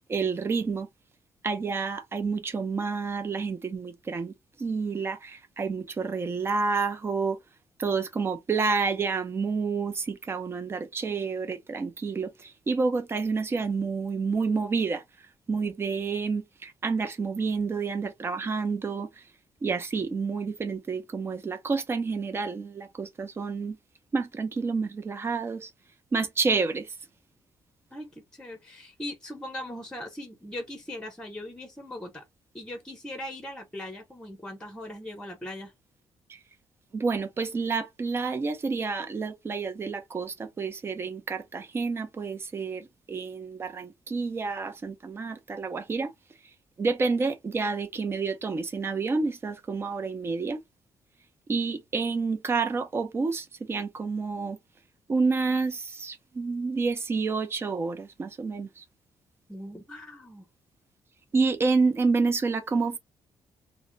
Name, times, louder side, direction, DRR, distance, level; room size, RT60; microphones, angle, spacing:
voice 1, 0.1-0.9 1.4-4.3 4.6-7.4 7.8-15.0 15.5-19.1 19.6-23.8 24.1-25.7 26.1-26.9 36.3-36.4 36.9-46.1 46.8-50.6 51.5-54.6 55.1-58.8 61.3-63.0, right 4 dB, 25° right, 0.6 m, -29 dB
voice 2, 27.9-32.2 32.5-35.7 59.5-60.5, left 1 dB, 10° left, 0.9 m, -40 dB
2.7 x 2.1 x 3.8 m
cardioid pair, 155°, 9 cm